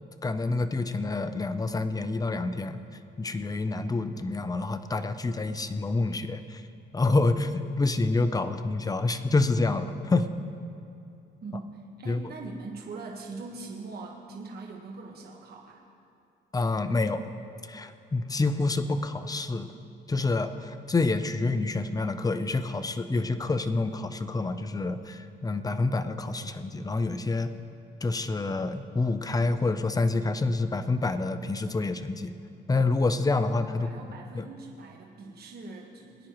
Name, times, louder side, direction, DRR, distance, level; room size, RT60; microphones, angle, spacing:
voice 1, 0.2-2.8 3.2-6.6 6.9-10.3 12.1-12.2 16.5-17.3 17.7-19.7 20.1-27.5 28.0-32.3 32.7-33.9 34.3-34.5, left 3 dB, 20° left, 10 dB, 0.6 m, -27 dB
voice 2, 11.4-15.8 33.7-36.3, right 3 dB, 50° right, -1 dB, 1.4 m, -42 dB
22.5 x 9.9 x 3.1 m, 2.6 s
cardioid pair, 90°, 20 cm